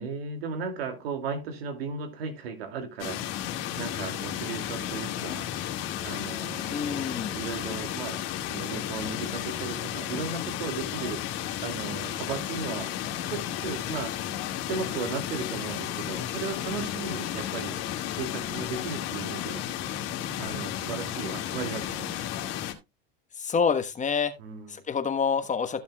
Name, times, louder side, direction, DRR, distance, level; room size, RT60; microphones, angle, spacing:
voice 1, 0.0-3.4 3.8-5.5 6.0-8.2 8.5-11.2 11.6-12.9 13.3-14.1 14.7-17.8 18.1-19.7 20.4-22.3 24.4-24.7, right 5 dB, 90° right, 2.5 m, -36 dB
sound 1, 3.0-22.7, left 11 dB, 55° left, 2.2 m, -33 dB
voice 2, 6.7-7.4 23.4-24.3 24.7-25.8, left 6 dB, 25° left, 1.3 m, -27 dB
14.5 x 7.1 x 2.3 m
supercardioid pair, 100°, 29 cm